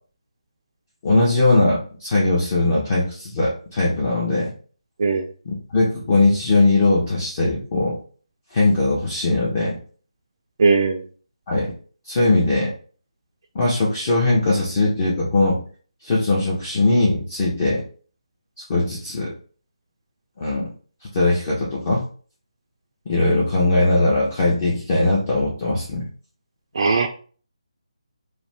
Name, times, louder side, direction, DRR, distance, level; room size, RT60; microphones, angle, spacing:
voice 1, 1.0-4.5 5.5-8.0 8.5-9.8 11.5-11.7 12.1-12.7 13.5-15.6 16.0-17.8 18.7-19.3 20.4-20.7 21.1-22.0 23.1-26.1, left 2 dB, 30° left, -4 dB, 0.7 m, -20 dB
voice 2, 10.6-11.0 26.8-27.1, right 4 dB, 45° right, 2 dB, 0.3 m, -18 dB
2.5 x 2.1 x 3.3 m, 0.41 s
figure-of-eight pair, 155°, 3 cm